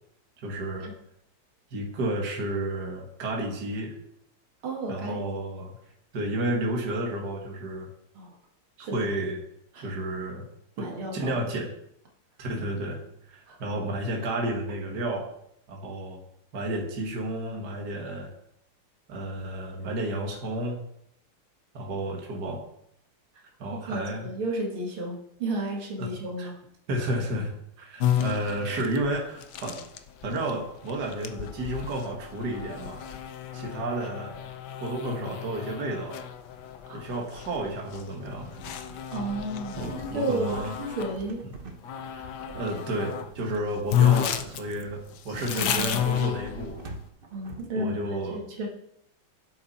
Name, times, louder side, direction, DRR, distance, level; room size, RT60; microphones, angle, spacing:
voice 1, 0.4-0.9 1.7-3.9 4.9-5.8 6.1-7.9 8.8-9.4 9.8-10.4 10.8-11.7 12.4-13.0 13.3-15.3 15.7-16.2 16.5-18.3 19.1-20.8 21.7-22.6 23.6-24.3 26.0-26.1 26.4-26.5 26.9-27.5 27.8-29.8 30.2-33.0 33.5-34.3 34.8-36.2 36.9-38.6 39.7-40.8 41.4-41.5 42.1-46.8 47.8-48.4, right 1 dB, 50° right, 0 dB, 2.2 m, -31 dB
voice 2, 4.6-5.3 8.2-8.3 8.8-9.1 9.7-9.9 10.8-11.4 13.5-13.6 23.7-26.6 27.0-27.1 36.9-37.0 39.1-41.4 45.5-46.0 47.3-48.7, right 2 dB, 80° right, 0 dB, 2.7 m, -33 dB
sound 1, 28.0-41.2 41.8-43.3 43.6-43.7 43.9-47.0, left 10 dB, 65° left, 1.2 m, -31 dB
sound 2, 38.6-47.8, right 2 dB, 35° right, 0.9 m, -45 dB
11.5 x 8.0 x 4.2 m, 0.74 s
omnidirectional pair, 2.3 m